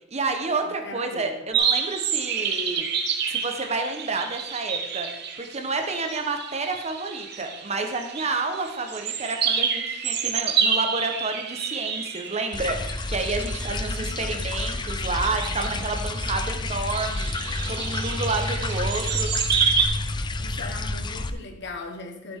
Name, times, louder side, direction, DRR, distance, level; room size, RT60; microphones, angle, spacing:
voice 1, 0.1-2.9 3.3-5.1 5.4-17.3 17.7-19.3, right 3 dB, 35° right, 5 dB, 1.2 m, -29 dB
voice 2, 0.6-1.4 13.7-14.5 15.7-15.9 20.4-22.4, left 3 dB, 65° left, 4 dB, 1.4 m, -40 dB
sound 1, 1.5-19.8, right 7 dB, 60° right, 1.1 m, -29 dB
sound 2, 12.5-21.3, left 2 dB, 25° left, 0.5 m, -29 dB
12.0 x 8.0 x 3.7 m, 0.89 s
head